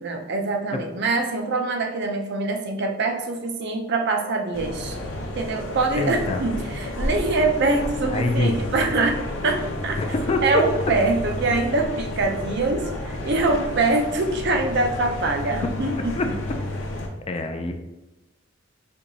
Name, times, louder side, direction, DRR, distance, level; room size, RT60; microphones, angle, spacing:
voice 1, 0.0-5.0 5.4-9.2 9.4-10.0 10.4-16.3, right 3 dB, 60° right, 4 dB, 0.5 m, -24 dB
sound 1, 4.5-17.1, left 1 dB, 85° left, 0.6 m, -31 dB
voice 2, 5.9-6.4 8.0-8.6 10.0-10.6 15.9-16.3 17.3-17.7, left 2 dB, 30° left, 5 dB, 0.3 m, -25 dB
4.4 x 2.7 x 2.6 m, 1.0 s
head